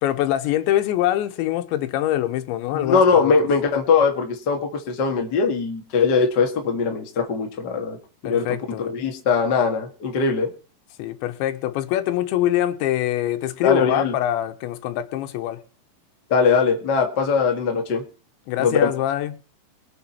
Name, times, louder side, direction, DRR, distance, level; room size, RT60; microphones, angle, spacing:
voice 1, 0.0-3.3 8.2-8.9 11.0-15.6 18.5-19.4, left 13 dB, 85° left, 3.2 m, -24 dB
voice 2, 2.7-8.0 8.2-8.4 8.8-10.5 13.6-14.1 16.3-18.0 18.6-18.9, left 5 dB, 60° left, 1.1 m, -21 dB
23.0 x 7.8 x 4.5 m
omnidirectional pair, 5.2 m